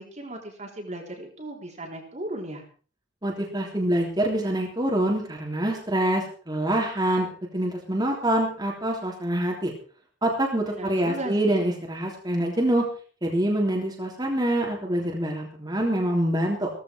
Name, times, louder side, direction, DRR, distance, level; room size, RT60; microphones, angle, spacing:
voice 1, 0.0-2.6 10.6-11.6, right 1 dB, 35° right, 1 dB, 3.6 m, -37 dB
voice 2, 3.2-7.3 7.5-9.7 10.2-12.8 13.2-16.7, right 1 dB, 20° right, -1 dB, 3.4 m, -25 dB
16.5 x 15.0 x 4.6 m, 0.41 s
head